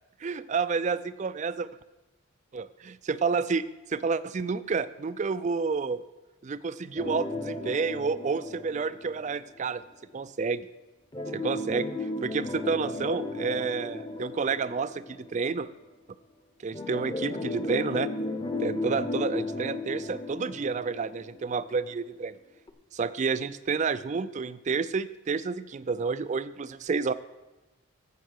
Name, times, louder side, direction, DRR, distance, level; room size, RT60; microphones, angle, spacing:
voice 1, 0.2-1.7 2.5-6.0 6.4-9.8 10.1-10.7 11.3-15.7 16.6-18.1 18.6-22.4 22.9-27.1, right 5 dB, 35° right, 15 dB, 0.3 m, -30 dB
sound 1, 7.0-9.6 11.1-15.5 16.7-21.6 22.0-22.1 22.7-22.8, left 2 dB, 20° left, 0.8 m, -35 dB
15.0 x 5.6 x 6.4 m, 1.1 s
head